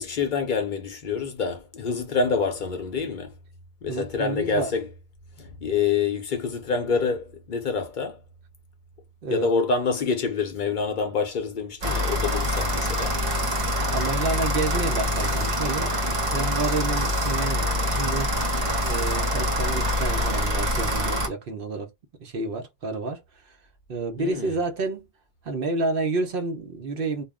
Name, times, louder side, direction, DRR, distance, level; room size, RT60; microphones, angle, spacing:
voice 1, 0.0-3.3 3.8-4.9 5.4-8.2 9.3-13.2 24.2-24.6, left 5 dB, 55° left, 0.7 m, -27 dB
voice 2, 3.9-4.7 9.2-9.5 13.9-18.3 18.8-21.9 22.2-23.6 23.9-25.1 25.4-27.2, right 3 dB, 65° right, 0.8 m, -29 dB
sound 1, 11.8-21.3, left 1 dB, 40° right, 0.6 m, -25 dB
2.3 x 2.1 x 3.5 m
omnidirectional pair, 1.0 m